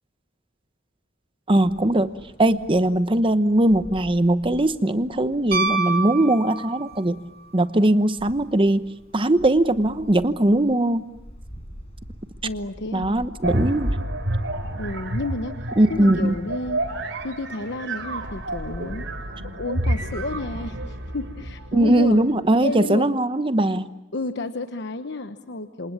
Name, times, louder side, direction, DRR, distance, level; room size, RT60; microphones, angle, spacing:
voice 1, 1.5-2.1 2.4-7.2 7.5-11.0 12.9-14.0 15.8-16.3 21.7-23.8, right 1 dB, 25° right, 12 dB, 0.9 m, -20 dB
sound 1, 1.6-18.8, equal, 30° left, 7.5 m, -46 dB
Piano, 5.5-7.1 9.4-9.5, right 3 dB, 50° right, 2.9 m, -26 dB
voice 2, 12.4-13.1 14.8-16.8 17.2-22.2 22.6-23.1 24.1-25.9, left 2 dB, 60° left, 8 dB, 1.1 m, -31 dB
sound 2, 13.4-22.2, right 1 dB, 70° right, 3.3 m, -29 dB
27.5 x 27.0 x 7.3 m, 0.98 s
head